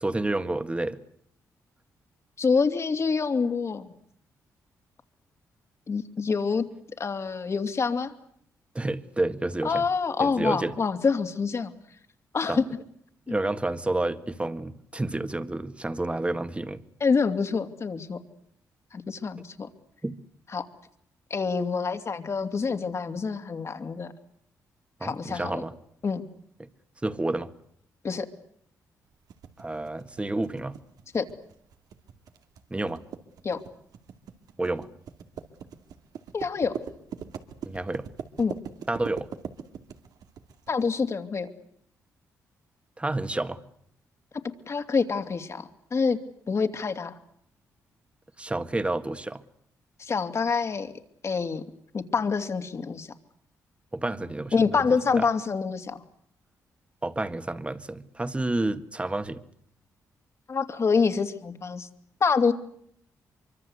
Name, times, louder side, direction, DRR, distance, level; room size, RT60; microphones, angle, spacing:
voice 1, 0.0-1.0 8.7-9.8 10.2-10.7 12.5-12.6 13.3-16.8 20.0-20.2 25.0-25.7 26.6-26.7 27.0-27.5 29.6-30.8 32.7-33.0 34.6-34.9 37.6-38.1 38.9-39.3 43.0-43.6 48.4-49.4 53.9-54.5 55.2-55.3 57.0-59.4, right 2 dB, 20° right, 11 dB, 1.9 m, -29 dB
voice 2, 2.4-3.9 5.9-6.6 7.0-8.1 9.6-11.7 12.3-12.6 13.3-13.4 17.0-18.2 18.9-19.7 20.5-20.7 21.3-24.1 25.0-25.6 26.0-26.2 28.0-28.3 31.1-31.2 33.4-33.6 36.3-36.7 38.4-38.5 40.7-41.5 44.7-46.2 46.5-47.1 50.0-50.9 51.2-51.6 51.9-53.1 54.5-56.0 60.5-61.9 62.2-62.5, left 5 dB, 45° left, 7 dB, 2.8 m, -26 dB
sound 1, 29.3-40.9, right 7 dB, 80° right, 2.5 m, -41 dB
24.5 x 24.5 x 8.2 m, 0.71 s
cardioid pair, 75°, 6 cm